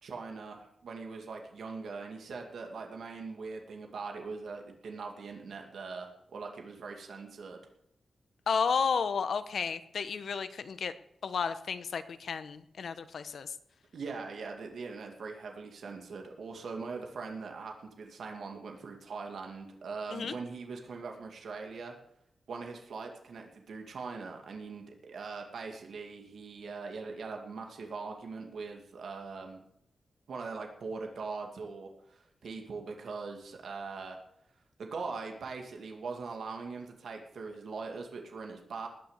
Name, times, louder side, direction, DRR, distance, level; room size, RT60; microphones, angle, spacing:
voice 1, 0.0-7.6 13.9-21.9 22.5-29.6 30.3-34.2 34.8-38.9, right 4 dB, 85° right, 2 dB, 2.2 m, -41 dB
voice 2, 8.5-10.9 11.2-13.5 20.1-20.3, left 6 dB, 70° left, 12 dB, 1.0 m, -32 dB
19.5 x 6.8 x 8.2 m, 0.77 s
wide cardioid pair, 150°, 0 cm